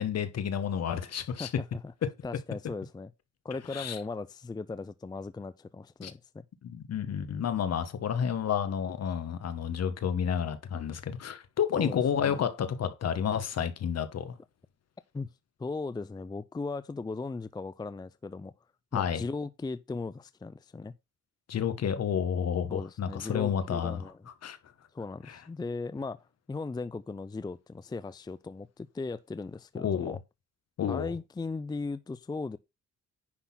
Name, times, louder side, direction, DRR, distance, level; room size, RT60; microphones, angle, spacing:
voice 1, 0.0-1.5 2.0-2.1 3.7-4.0 6.0-6.1 6.6-14.3 18.9-19.2 21.5-24.6 25.2-25.4 29.8-30.2 30.8-31.1, left 8 dB, 55° left, 1.4 m, -30 dB
voice 2, 2.2-3.1 3.4-6.4 11.8-12.4 15.1-15.3 15.6-18.5 18.9-20.9 22.7-24.2 24.9-26.2 26.5-30.2 30.9-32.6, left 3 dB, 15° left, 0.5 m, -37 dB
10.0 x 3.9 x 5.9 m
cardioid pair, 90°, 30 cm